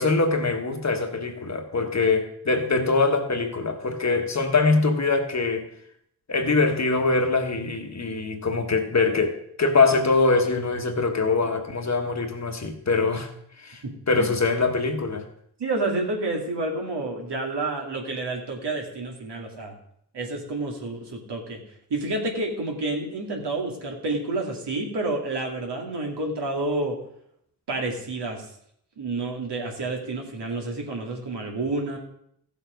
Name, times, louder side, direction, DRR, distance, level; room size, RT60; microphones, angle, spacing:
voice 1, 0.0-5.6 6.3-13.3 13.6-15.2, left 3 dB, 40° left, 5 dB, 1.4 m, -23 dB
voice 2, 13.8-14.3 15.6-19.7 20.1-21.6 21.9-27.0 27.7-28.5 29.0-32.0, right 2 dB, 75° right, 1 dB, 2.6 m, -29 dB
15.0 x 7.0 x 5.2 m, 0.71 s
wide cardioid pair, 100°, 41 cm